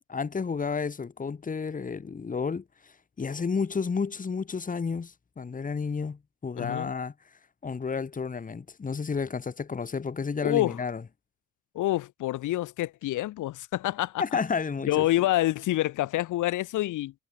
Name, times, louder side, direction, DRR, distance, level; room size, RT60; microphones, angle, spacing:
voice 1, 0.1-2.6 3.2-7.1 7.6-11.0 14.2-15.1, left 5 dB, 25° left, 1.4 m, -31 dB
voice 2, 6.6-6.9 10.4-10.8 11.7-14.2 14.9-17.1, left 15 dB, 80° left, 1.2 m, -27 dB
cardioid pair, 90°, 30 cm